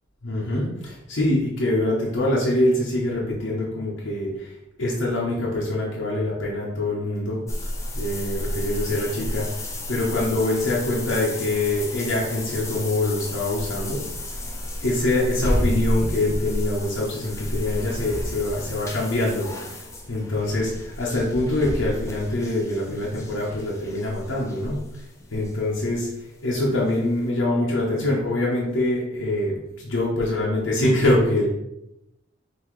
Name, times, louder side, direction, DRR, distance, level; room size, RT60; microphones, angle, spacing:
voice 1, 0.2-4.5 4.8-7.4 7.9-9.5 9.9-14.0 14.8-19.5 20.1-24.9 25.3-26.1 26.4-31.5, left 1 dB, 75° left, -5 dB, 0.9 m, -24 dB
sound 1, 7.5-26.2 26.4-26.5 27.0-27.1, left 1 dB, 15° left, 0.5 m, -31 dB
5.6 x 2.9 x 3.1 m, 0.88 s
head